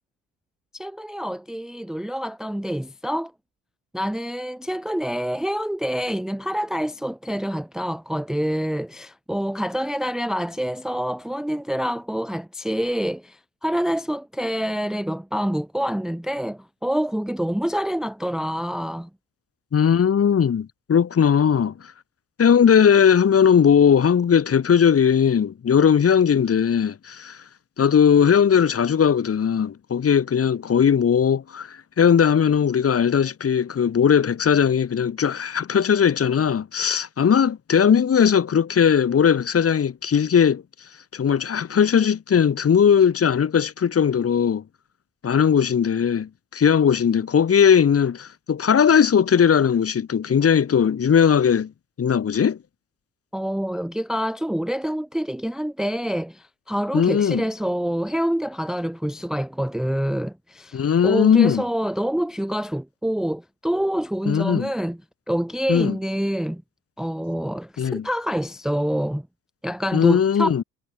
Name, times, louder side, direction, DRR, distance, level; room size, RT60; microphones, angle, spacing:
voice 1, 0.7-3.3 3.9-19.1 53.3-65.0 65.3-66.6 67.0-69.3 69.6-70.5, equal, ahead, 0.8 m, -26 dB
voice 2, 19.7-21.7 22.4-27.4 27.8-40.6 41.1-44.6 45.2-51.7 52.0-52.6 56.9-57.4 60.7-61.6 64.3-64.7 65.7-66.0 67.8-68.1 69.9-70.6, left 7 dB, 40° left, 2.6 m, -18 dB
supercardioid pair, 70°, 35 cm